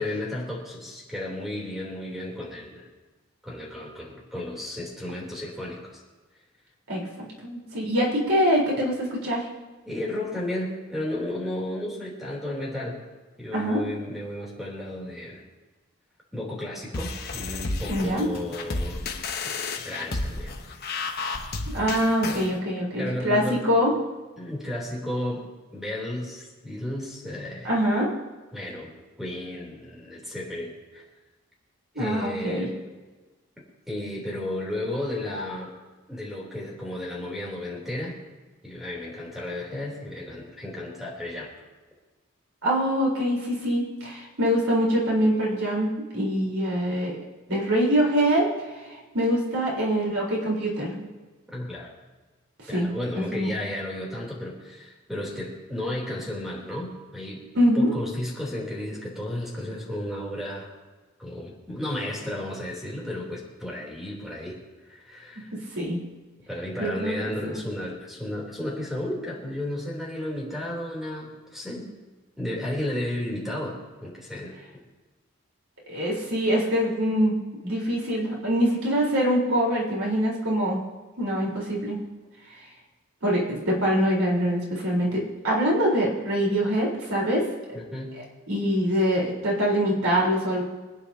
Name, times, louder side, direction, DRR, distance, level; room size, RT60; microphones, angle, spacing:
voice 1, 0.0-2.9 3.4-6.0 9.8-13.0 13.4-15.4 16.3-19.1 19.4-19.5 19.8-20.6 23.0-23.6 24.4-27.7 28.5-31.0 31.9-32.7 33.6-35.7 36.1-38.2 38.6-41.5 51.5-51.9 52.7-57.4 57.7-60.7 61.2-64.6 64.9-65.5 66.5-71.9 72.4-74.8 87.7-88.2, left 1 dB, ahead, -4 dB, 3.3 m, -33 dB
voice 2, 6.9-9.5 13.5-13.8 17.9-18.3 21.7-23.9 27.6-28.1 32.0-32.7 42.6-47.2 47.5-48.5 49.1-51.1 52.7-53.5 57.5-57.9 65.5-66.0 66.8-67.3 75.9-77.4 77.6-80.8 81.2-82.0 83.2-87.4 88.5-90.6, equal, 80° right, -4 dB, 4.1 m, -24 dB
sound 1, 16.9-22.5, left 3 dB, 45° left, 1.1 m, -32 dB
26.0 x 9.8 x 2.8 m, 1.3 s
head